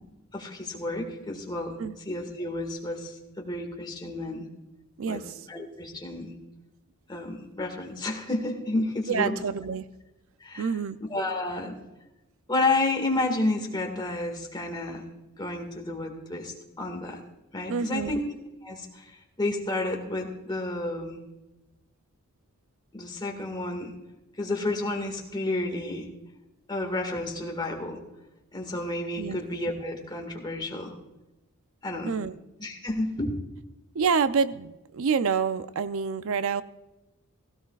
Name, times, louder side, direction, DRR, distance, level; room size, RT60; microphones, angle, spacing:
voice 1, 0.3-1.8 2.1-4.5 5.1-5.2 5.5-6.3 7.1-9.4 10.4-10.7 11.1-11.8 12.5-15.0 15.4-17.2 17.5-18.2 18.6-19.1 19.4-21.2 22.9-23.9 24.4-26.1 26.7-28.0 28.5-30.9 31.8-32.1 32.6-33.4, left 2 dB, 20° left, 3 dB, 1.8 m, -31 dB
voice 2, 5.0-5.4 9.1-9.9 10.6-11.0 17.7-18.2 29.2-29.4 32.1-32.4 33.9-36.6, right 6 dB, 65° right, 13 dB, 0.5 m, -27 dB
16.5 x 16.5 x 2.4 m, 1.0 s
head